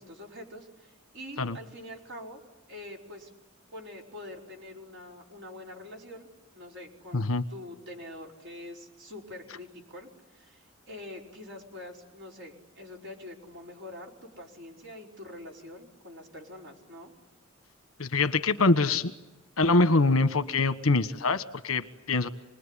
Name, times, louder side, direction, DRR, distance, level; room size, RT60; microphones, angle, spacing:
voice 1, 0.0-2.4 2.7-3.3 3.7-6.3 6.5-17.1, left 1 dB, 55° right, -1 dB, 5.1 m, -45 dB
voice 2, 7.1-7.4 18.0-19.1 19.6-22.3, left 3 dB, 80° left, 10 dB, 1.4 m, -24 dB
28.0 x 21.0 x 10.0 m, 1.0 s
head